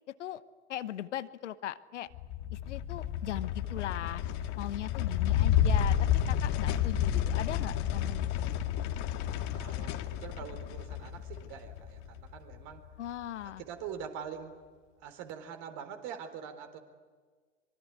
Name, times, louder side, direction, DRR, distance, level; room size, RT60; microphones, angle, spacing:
voice 1, 0.7-2.1 2.5-4.2 4.6-6.0 6.3-8.5 13.0-13.6, left 12 dB, 70° left, 15 dB, 1.1 m, -39 dB
sound 1, 2.1-12.7, left 9 dB, 50° left, 1.9 m, -31 dB
voice 2, 9.3-12.8 13.4-14.5 15.0-16.8, right 8 dB, 50° right, 7 dB, 4.0 m, -44 dB
25.0 x 23.0 x 9.8 m, 1.5 s
hypercardioid pair, 90°, 36 cm